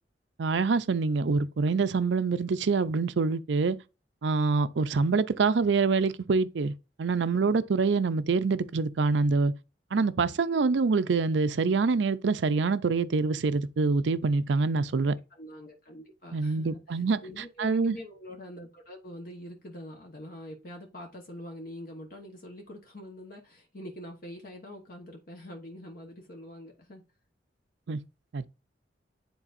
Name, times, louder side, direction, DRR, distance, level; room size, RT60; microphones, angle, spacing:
voice 1, 0.4-3.8 4.2-6.7 7.0-9.5 9.9-15.1 16.3-17.2 17.6-18.0 27.9-28.0 28.3-28.5, right 4 dB, 75° right, 0.5 m, -25 dB
voice 2, 15.0-27.0, left 1 dB, 55° left, 1.1 m, -44 dB
9.9 x 3.9 x 2.5 m
head